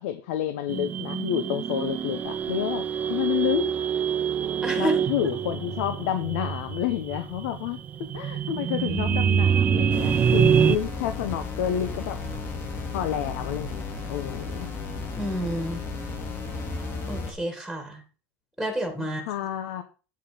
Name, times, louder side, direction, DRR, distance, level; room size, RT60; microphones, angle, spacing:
voice 1, 0.0-3.7 4.8-7.8 8.1-12.1 12.9-14.7 19.0-19.8, left 11 dB, 80° left, 8 dB, 1.1 m, -29 dB
sound 1, 0.7-10.8, right 7 dB, 20° right, 0.4 m, -25 dB
voice 2, 4.6-5.3 15.2-15.8 17.1-18.0 18.6-19.2, equal, ahead, 4 dB, 2.1 m, -30 dB
sound 2, 9.9-17.3, left 3 dB, 30° left, 2.7 m, -34 dB
9.0 x 6.6 x 5.2 m, 0.35 s
cardioid pair, 160°, 8 cm